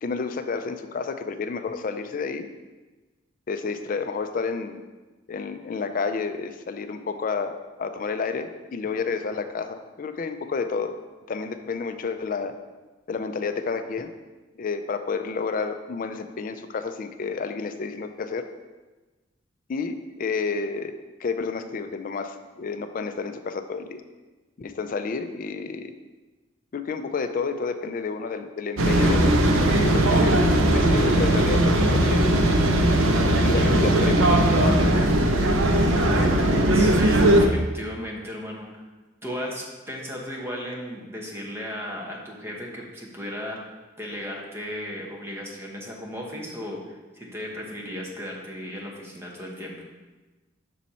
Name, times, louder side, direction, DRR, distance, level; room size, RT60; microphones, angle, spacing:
voice 1, 0.0-2.5 3.5-4.8 5.3-11.0 11.3-12.5 13.1-14.1 14.6-18.4 19.7-24.0 24.6-25.9 26.7-29.4 29.8-30.4 30.7-32.4 33.4-34.8, left 4 dB, 45° left, 9 dB, 0.4 m, -30 dB
sound 1, 28.8-37.5, right 1 dB, 90° right, 0.6 m, -19 dB
voice 2, 36.7-38.8 39.2-43.7 44.0-49.7, equal, 15° right, -2 dB, 1.0 m, -35 dB
6.2 x 4.1 x 4.2 m, 1.2 s
head